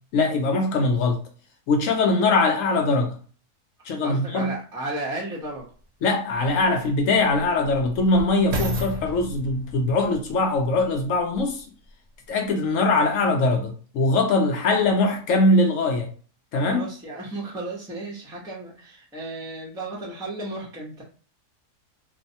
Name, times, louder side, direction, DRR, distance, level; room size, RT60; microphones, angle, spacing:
voice 1, 0.1-1.2 1.7-3.2 3.9-4.6 6.0-11.6 12.3-16.1 16.5-16.9, left 2 dB, 65° left, 0.9 m, -22 dB
voice 2, 4.0-5.6 16.7-21.0, right 2 dB, 5° right, 0.5 m, -34 dB
sound 1, 5.5-5.6 6.3-11.6 12.3-12.4, left 1 dB, 75° right, 1.3 m, -34 dB
3.0 x 2.0 x 2.7 m
omnidirectional pair, 1.6 m